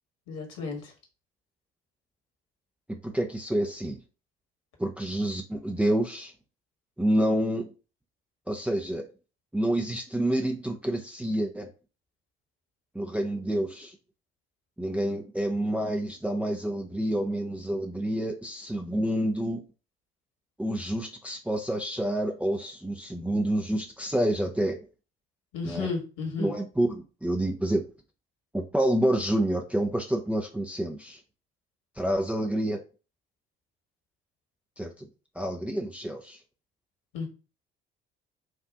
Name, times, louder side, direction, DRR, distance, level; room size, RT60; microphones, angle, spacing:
voice 1, 0.3-0.9 25.5-26.5 37.1-37.3, left 4 dB, 55° left, 1 dB, 1.8 m, -33 dB
voice 2, 2.9-4.0 4.8-6.3 7.0-7.7 8.5-9.1 9.5-11.7 12.9-14.0 14.8-19.6 20.6-24.8 25.6-25.9 26.4-27.8 28.5-31.2 32.0-32.8 34.8-35.1 35.4-36.4, right 1 dB, 5° right, 2 dB, 0.6 m, -28 dB
4.8 x 2.6 x 3.6 m, 0.33 s
figure-of-eight pair, 50°, 30 cm